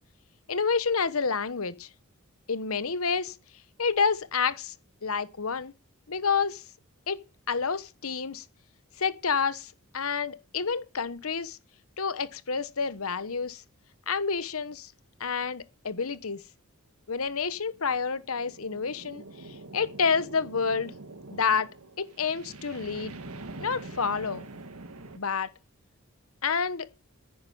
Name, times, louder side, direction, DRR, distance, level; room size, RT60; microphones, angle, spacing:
voice 1, 0.5-1.9 2.5-3.4 3.8-4.7 5.0-5.7 6.1-6.6 7.1-8.4 9.0-11.6 12.0-13.6 14.1-14.9 15.2-16.4 17.1-19.2 19.7-20.9 21.3-21.7 22.0-23.1 23.6-24.4 25.2-25.5 26.4-26.9, left 5 dB, 75° left, 1.1 m, -29 dB
sound 1, 17.5-25.2, right 2 dB, 85° right, 1.6 m, -45 dB
10.5 x 9.7 x 8.5 m
head